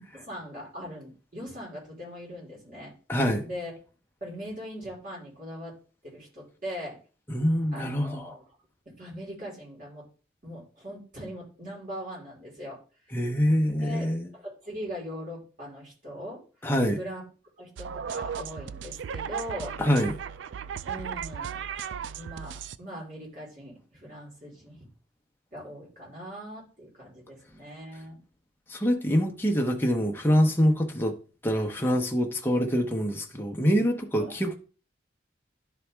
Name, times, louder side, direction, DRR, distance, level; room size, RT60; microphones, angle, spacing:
voice 1, 0.1-2.9 3.4-3.7 4.2-5.7 6.0-7.0 7.7-8.4 9.0-10.1 10.4-12.8 13.8-16.4 17.0-17.2 17.6-19.8 20.9-21.6 22.1-24.9 25.5-28.2 34.2-34.4, equal, 45° right, 4.0 m, -40 dB
voice 2, 3.1-3.4 7.3-8.2 13.1-14.3 16.6-17.0 19.8-20.2 28.7-31.2 31.4-34.6, equal, 10° left, 0.9 m, -25 dB
sound 1, 17.8-22.8, right 7 dB, 75° right, 0.3 m, -36 dB
11.0 x 4.1 x 3.4 m
head